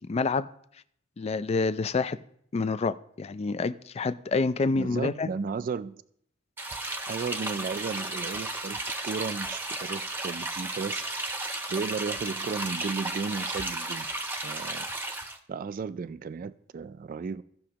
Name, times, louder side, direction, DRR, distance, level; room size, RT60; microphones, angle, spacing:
voice 1, 0.1-0.5 1.2-2.2 2.5-5.3, left 4 dB, 30° left, 0.4 m, -27 dB
voice 2, 4.7-6.0 7.1-11.0 11.7-14.1 14.4-14.9 15.5-17.4, right 5 dB, 45° right, 0.3 m, -34 dB
sound 1, 6.6-15.4, right 2 dB, 10° right, 0.8 m, -34 dB
16.5 x 6.2 x 2.9 m
head